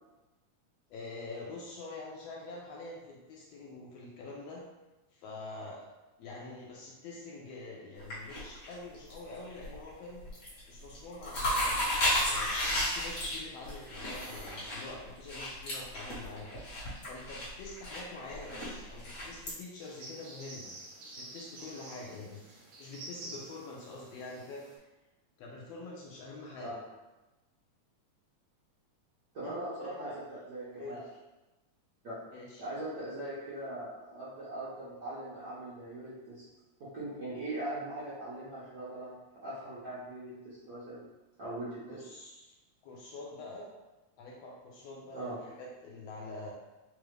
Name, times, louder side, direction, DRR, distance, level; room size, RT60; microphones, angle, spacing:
voice 1, 0.9-4.6 5.1-5.9 6.2-10.2 10.7-11.9 12.2-16.5 17.1-20.7 21.0-22.4 22.8-24.6 25.4-26.8 29.4-30.2 30.8-31.2 32.3-32.6 41.9-42.6 42.8-43.7 44.2-46.5, left 2 dB, 75° left, -3 dB, 1.5 m, -45 dB
sound 1, 8.0-9.2 9.5-9.9 10.2-10.6 10.9-19.5, left 1 dB, 45° left, 1.1 m, -33 dB
sound 2, 19.8-24.8, right 2 dB, 65° right, 1.2 m, -48 dB
voice 2, 29.3-30.1 30.5-31.0 32.0-32.1 32.6-36.4 36.8-39.1 39.4-41.0 41.4-42.0 45.1-45.4, right 1 dB, 85° right, -11 dB, 0.9 m, -40 dB
4.6 x 2.4 x 3.2 m, 1.1 s
omnidirectional pair, 3.3 m